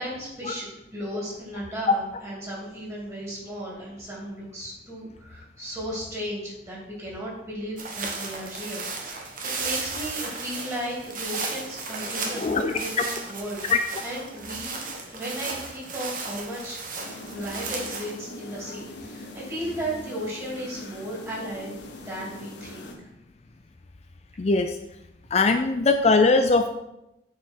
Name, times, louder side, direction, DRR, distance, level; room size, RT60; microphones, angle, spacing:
voice 1, 0.0-13.6 14.0-14.8 15.1-16.8 17.3-21.7 22.0-23.1, equal, 15° right, -5 dB, 3.0 m, -35 dB
sound 1, 7.8-18.1, right 4 dB, 50° right, 1.4 m, -35 dB
voice 2, 12.4-12.7 13.7-13.8 24.4-24.8 25.3-26.7, left 3 dB, 35° left, 7 dB, 0.4 m, -20 dB
sound 2, 17.0-22.9, left 2 dB, 80° left, 1.3 m, -42 dB
9.1 x 5.0 x 4.6 m, 0.89 s
head